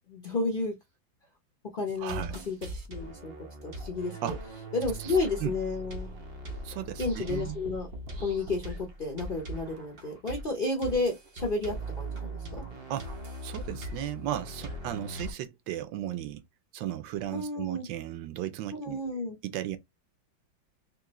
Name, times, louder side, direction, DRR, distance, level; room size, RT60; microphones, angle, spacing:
voice 1, 0.1-0.7 1.7-2.6 2.9-3.3 3.6-4.3 4.7-6.1 7.0-7.9 8.2-12.6 17.3-17.9 18.7-19.4, left 3 dB, 45° left, 0.7 m, -31 dB
sound 1, 1.9-15.3, right 1 dB, 55° right, 0.6 m, -40 dB
voice 2, 2.0-2.4 4.2-4.4 5.0-5.5 6.6-7.7 12.9-13.1 13.4-16.4 16.7-19.0 19.4-19.8, right 12 dB, 75° right, 1.3 m, -35 dB
3.7 x 2.9 x 2.9 m
omnidirectional pair, 2.1 m